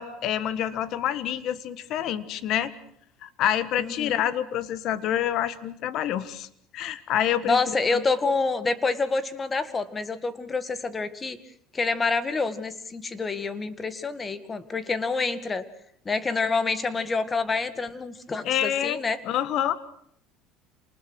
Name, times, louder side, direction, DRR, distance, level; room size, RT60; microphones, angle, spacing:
voice 1, 0.0-2.7 3.2-6.5 6.7-8.0 18.4-19.8, left 11 dB, 60° left, 15 dB, 1.6 m, -27 dB
voice 2, 3.8-4.2 7.5-11.4 11.7-15.6 16.1-19.2, left 4 dB, 20° left, 13 dB, 1.9 m, -27 dB
28.0 x 20.0 x 6.3 m, 0.67 s
supercardioid pair, 115°, 0 cm